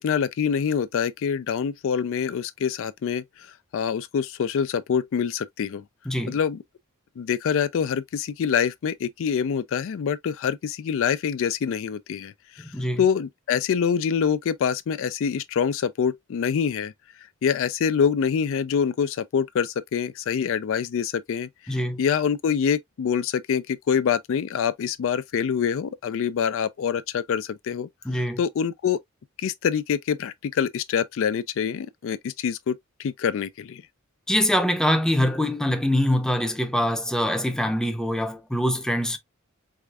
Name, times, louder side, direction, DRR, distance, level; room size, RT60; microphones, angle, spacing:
voice 1, 0.0-3.5 3.7-5.8 6.3-6.6 7.2-12.6 13.0-16.9 17.4-27.9 28.4-29.0 29.4-33.8, left 7 dB, 65° left, 0.3 m, -25 dB
voice 2, 6.1-6.4 12.6-13.0 21.7-22.0 28.0-28.4 34.3-39.2, left 1 dB, 5° left, 0.6 m, -24 dB
4.8 x 3.3 x 2.3 m
head